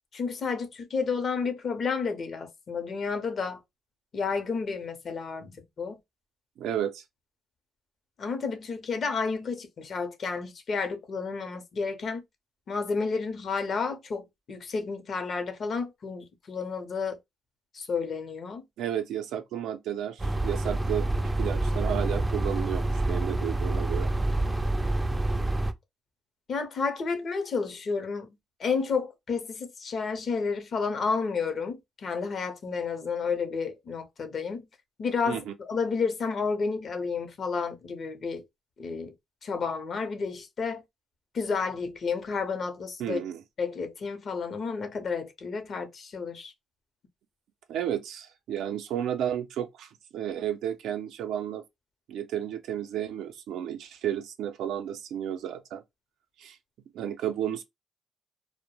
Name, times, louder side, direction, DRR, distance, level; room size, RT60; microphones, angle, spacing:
voice 1, 0.1-3.6 4.1-6.0 8.2-12.2 12.7-17.2 17.7-18.6 26.5-34.7 35.0-38.4 38.8-39.1 39.4-40.8 41.3-43.2 43.6-46.5, left 5 dB, 55° left, 0.6 m, -31 dB
voice 2, 6.6-7.0 18.8-21.1 21.4-24.1 35.3-35.5 43.0-43.4 47.7-51.6 52.1-55.8 56.4-56.6 56.9-57.6, right 10 dB, 80° right, 0.4 m, -32 dB
sound 1, 20.2-25.7, right 2 dB, 15° right, 0.4 m, -27 dB
2.2 x 2.0 x 2.9 m
cardioid pair, 90°, 0 cm